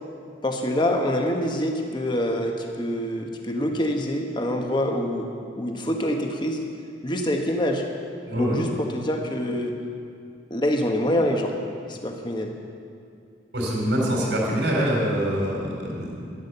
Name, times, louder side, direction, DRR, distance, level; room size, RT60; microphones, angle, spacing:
voice 1, 0.4-5.3 5.6-6.6 7.0-7.8 8.4-9.7 10.5-11.6 11.9-12.5, left 1 dB, 25° left, 2 dB, 1.2 m, -25 dB
voice 2, 8.3-8.6 13.5-16.1, equal, 75° right, -2 dB, 3.8 m, -24 dB
12.5 x 10.5 x 6.8 m, 2.4 s
head